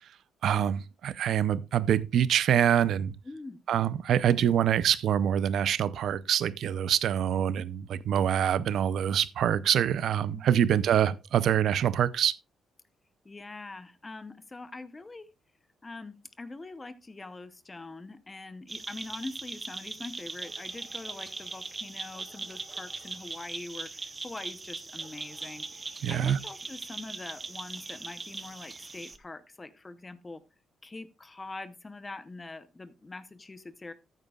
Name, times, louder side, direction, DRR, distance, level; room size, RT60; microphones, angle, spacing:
voice 1, 0.4-3.1 3.7-12.4 26.0-26.4, right 9 dB, 70° right, 0.6 m, -25 dB
voice 2, 3.2-3.6 10.3-10.8 13.2-15.3 15.8-30.4 30.8-33.9, left 3 dB, 20° left, 0.7 m, -43 dB
sound 1, 18.7-29.2, right 3 dB, 25° right, 0.8 m, -40 dB
13.5 x 9.2 x 2.3 m
cardioid pair, 120°, 0 cm